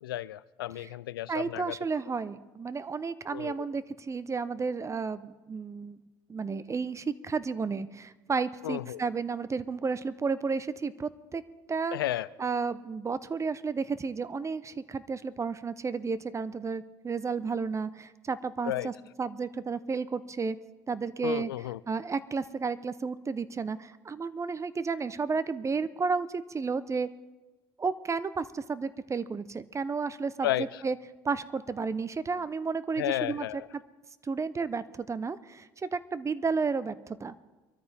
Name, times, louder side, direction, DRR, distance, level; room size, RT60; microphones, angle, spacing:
voice 1, 0.0-1.8 3.3-3.5 8.6-9.0 11.9-12.3 18.7-18.9 21.2-21.8 30.4-30.7 33.0-33.7, left 14 dB, 85° left, 0.4 m, -32 dB
voice 2, 1.3-6.0 6.3-11.4 11.7-12.0 12.4-20.6 20.9-21.5 21.9-27.1 27.8-31.0 31.2-33.5 34.2-37.3, right 5 dB, 25° right, 0.8 m, -32 dB
24.0 x 13.5 x 3.5 m
hypercardioid pair, 65°, 12 cm